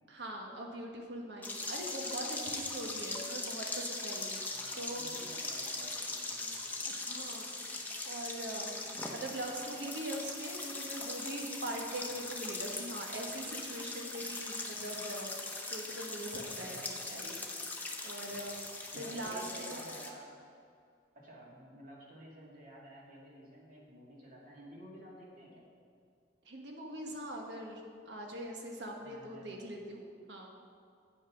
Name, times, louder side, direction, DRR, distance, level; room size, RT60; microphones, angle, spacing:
voice 1, 0.1-4.4 4.7-5.0 6.9-8.7 9.1-15.3 15.7-16.8 17.1-17.4 18.0-18.6 18.9-19.8 26.4-30.5, right 1 dB, 75° right, 1 dB, 1.3 m, -42 dB
sound 1, 1.4-20.1, left 2 dB, 10° left, 0.9 m, -40 dB
voice 2, 4.5-6.6 16.3-16.8 18.9-20.3 21.1-25.6 29.0-29.5, equal, 50° right, -4 dB, 2.1 m, -52 dB
8.9 x 5.6 x 5.9 m, 2.3 s
head